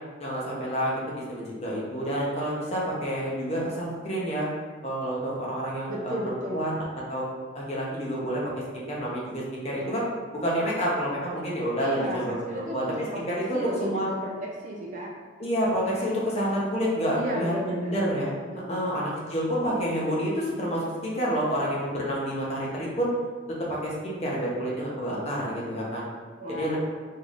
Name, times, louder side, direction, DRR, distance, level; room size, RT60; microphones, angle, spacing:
voice 1, 0.2-4.5 4.8-7.2 7.5-10.0 10.3-14.1 15.4-18.3 18.7-23.1 23.7-26.0 26.5-26.8, equal, 30° left, -5 dB, 0.8 m, -29 dB
voice 2, 5.9-6.8 11.8-15.1 17.1-17.9 18.5-18.9 26.4-26.8, equal, 40° right, -3 dB, 0.6 m, -34 dB
4.4 x 3.5 x 2.5 m, 1.5 s
head